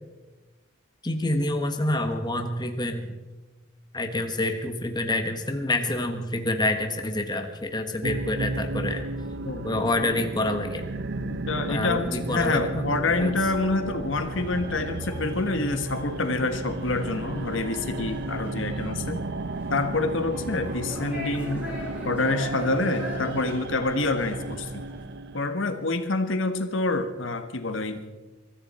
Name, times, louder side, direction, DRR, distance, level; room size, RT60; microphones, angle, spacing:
voice 1, 1.0-3.1 3.9-9.0 9.6-10.8 11.7-12.8 13.2-13.3, left 1 dB, 20° left, 5 dB, 1.3 m, -27 dB
sound 1, 8.0-25.5, right 2 dB, 60° right, 0.7 m, -34 dB
voice 2, 11.2-19.2 19.7-21.7 22.0-24.8 25.3-28.0, left 3 dB, 70° left, 8 dB, 1.3 m, -27 dB
sound 2, 14.1-25.0, left 1 dB, 5° right, 6.7 m, -42 dB
23.5 x 14.0 x 4.2 m, 1.2 s
head